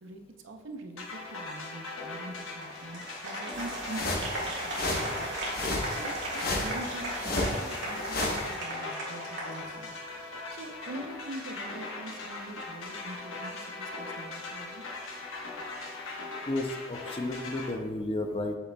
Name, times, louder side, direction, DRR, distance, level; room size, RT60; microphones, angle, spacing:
voice 1, 0.0-9.9 10.2-14.8, right 2 dB, 75° right, 5 dB, 0.6 m, -44 dB
sound 1, 1.0-17.7, left 3 dB, 85° left, 1.2 m, -40 dB
Applause, 2.6-10.2, right 1 dB, 55° right, 1.9 m, -37 dB
sound 2, 3.5-8.5, left 2 dB, 45° left, 1.0 m, -33 dB
voice 2, 16.5-18.6, left 2 dB, 30° left, 5 dB, 0.5 m, -32 dB
7.6 x 6.6 x 2.2 m, 1.3 s
head